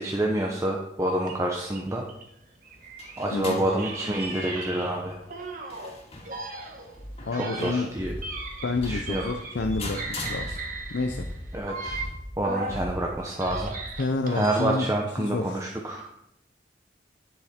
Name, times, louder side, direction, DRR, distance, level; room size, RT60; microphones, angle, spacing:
voice 1, 0.0-2.0 3.2-5.2 7.3-8.1 8.8-9.2 11.5-12.1 12.4-13.7 14.3-16.1, right 1 dB, 15° right, -1 dB, 0.9 m, -28 dB
sound 1, 1.2-3.3 3.7-5.9 6.2-9.7 9.9-12.8 13.2-14.9, right 3 dB, 50° right, 1.6 m, -37 dB
sound 2, 2.6-11.1, left 2 dB, 35° left, 2.1 m, -42 dB
voice 2, 3.3-3.7 7.3-7.9 8.6-10.6 10.9-11.3 14.0-15.7, left 3 dB, 70° left, 5 dB, 0.6 m, -29 dB
sound 3, 8.0-14.0, equal, 10° left, 1.1 m, -38 dB
9.3 x 7.7 x 4.4 m, 0.80 s
head